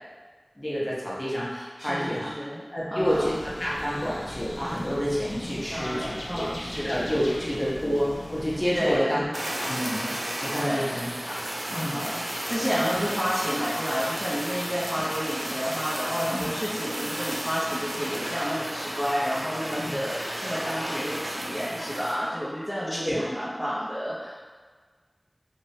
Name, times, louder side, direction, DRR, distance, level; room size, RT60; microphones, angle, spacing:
voice 1, 0.6-2.3 2.7-6.2 6.8-9.3 9.6-10.1 10.4-11.4 11.7-12.0 12.9-13.0 16.3-16.5 19.8-19.9 20.9-21.0 23.0-23.2, equal, 30° left, -7 dB, 0.8 m, -29 dB
voice 2, 1.8-3.3 5.7-7.0 8.7-9.2 10.5-11.1 11.7-24.4, equal, ahead, -9 dB, 0.6 m, -30 dB
sound 1, 3.1-9.0, left 1 dB, 65° left, 0.4 m, -38 dB
Fire, 9.3-22.2, right 1 dB, 90° right, 0.4 m, -33 dB
3.0 x 2.1 x 2.7 m, 1.5 s
wide cardioid pair, 40°, 0 cm